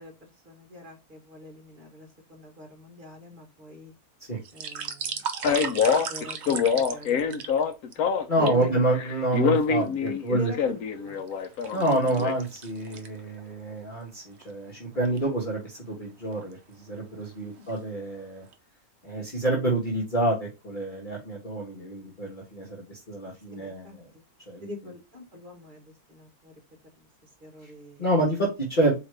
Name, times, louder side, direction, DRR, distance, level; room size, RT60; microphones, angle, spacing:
voice 1, 0.0-3.9 4.5-5.3 5.9-7.7 8.4-8.8 9.8-11.2 12.1-12.3 17.6-17.7 23.5-24.0 24.6-28.1, left 2 dB, 35° right, 2 dB, 1.6 m, -43 dB
sound 1, 4.3-7.9 8.4-8.6 9.3-10.1 10.6-13.5 13.8-13.9 14.4-14.5 14.9-15.2 16.0-16.5 17.1-17.3 17.6-18.2 18.5-18.6, right 6 dB, 55° right, 0.9 m, -36 dB
Male speech man speaking, 5.4-8.7 8.9-12.3, left 6 dB, 75° left, 1.1 m, -25 dB
voice 2, 8.3-10.5 11.7-18.4 19.0-24.0 24.5-24.7 27.6-27.7 28.0-29.0, right 1 dB, 35° left, -3 dB, 1.4 m, -28 dB
4.7 x 3.2 x 3.2 m, 0.27 s
omnidirectional pair, 1.6 m